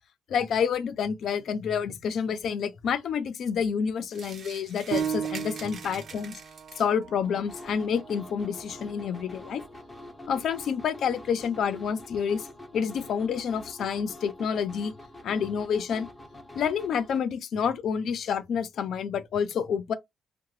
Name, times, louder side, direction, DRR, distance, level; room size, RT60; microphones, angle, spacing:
voice 1, 0.3-6.4 6.8-9.6 10.3-12.5 12.7-14.9 15.2-16.1 16.5-19.9, left 7 dB, 60° left, 0.4 m, -28 dB
sound 1, 4.1-7.0, right 5 dB, 45° right, 0.6 m, -45 dB
Piano, 4.9-10.1 10.6-10.7 11.3-11.8, right 8 dB, 75° right, 0.8 m, -37 dB
sound 2, 7.2-17.2, left 1 dB, 10° left, 0.6 m, -46 dB
2.8 x 2.1 x 3.0 m
cardioid pair, 165°, 0 cm